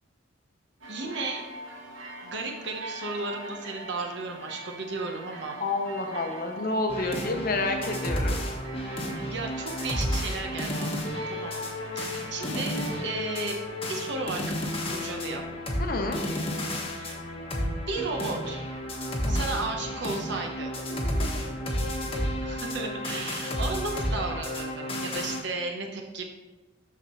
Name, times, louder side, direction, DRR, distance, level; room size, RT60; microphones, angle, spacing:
sound 1, 0.8-13.1, right 2 dB, 75° right, 1.2 m, -42 dB
voice 1, 0.9-1.4 2.2-5.6 9.1-11.7 11.9-13.6 13.9-15.4 16.9-17.3 17.9-18.6 19.3-20.7 22.4-26.2, right 3 dB, 60° right, 1 dB, 1.0 m, -34 dB
voice 2, 5.6-8.4 15.8-16.2 19.2-19.7 21.0-21.3 22.0-22.4, left 2 dB, 45° left, 4 dB, 0.9 m, -30 dB
sound 2, 6.9-25.4, equal, 30° left, 1.2 m, -32 dB
13.0 x 4.5 x 3.1 m, 1.2 s
head